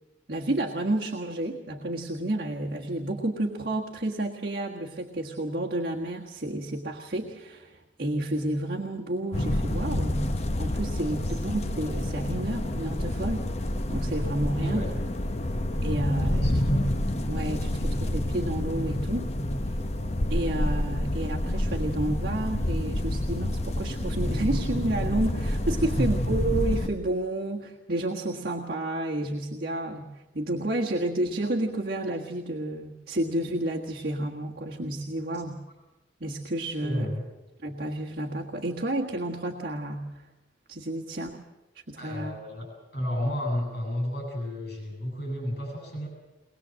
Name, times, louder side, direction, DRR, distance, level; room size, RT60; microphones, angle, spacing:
voice 1, 0.3-13.4 13.9-14.8 15.8-16.6 17.3-19.3 20.3-35.6 36.2-37.1 37.6-40.3 40.7-41.4 41.9-42.4, right 1 dB, 55° right, -1 dB, 1.6 m, -30 dB
sound 1, 9.3-26.9, left 1 dB, 35° left, 1.0 m, -28 dB
voice 2, 16.2-16.8 25.8-26.1 35.3-35.4 36.8-37.2 42.0-42.7 42.9-46.1, equal, 60° left, 1 dB, 7.9 m, -32 dB
22.0 x 20.5 x 7.6 m, 1.0 s
head